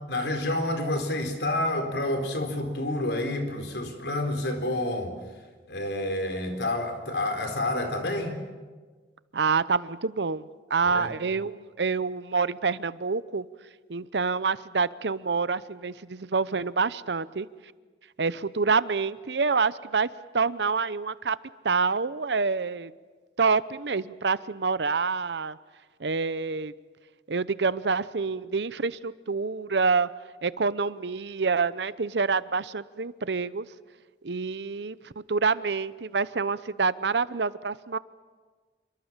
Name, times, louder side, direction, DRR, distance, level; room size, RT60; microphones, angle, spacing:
voice 1, 0.1-5.1 5.7-8.4 10.8-11.1, left 1 dB, 80° left, 6 dB, 4.1 m, -29 dB
voice 2, 9.3-13.4 13.9-17.5 18.2-20.1 20.3-21.4 21.6-22.9 23.4-25.6 26.0-26.7 27.3-30.1 30.4-33.7 34.2-38.0, right 4 dB, 85° right, 17 dB, 0.8 m, -27 dB
27.5 x 23.5 x 7.4 m, 1.4 s
head